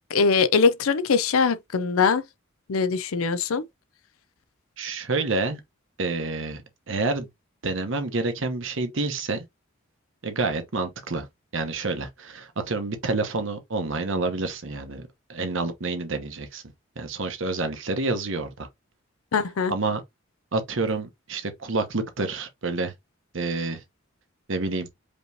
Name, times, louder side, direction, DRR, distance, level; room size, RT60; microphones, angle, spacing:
voice 1, 0.1-2.2 2.7-3.6 19.3-19.7, left 5 dB, 85° left, 0.5 m, -22 dB
voice 2, 4.8-5.6 6.0-6.6 6.9-7.3 7.6-9.4 10.2-11.3 11.5-16.6 17.0-18.7 19.7-20.0 20.5-22.9 23.3-23.8 24.5-24.9, right 3 dB, 65° right, 1.0 m, -28 dB
5.2 x 3.1 x 2.7 m
head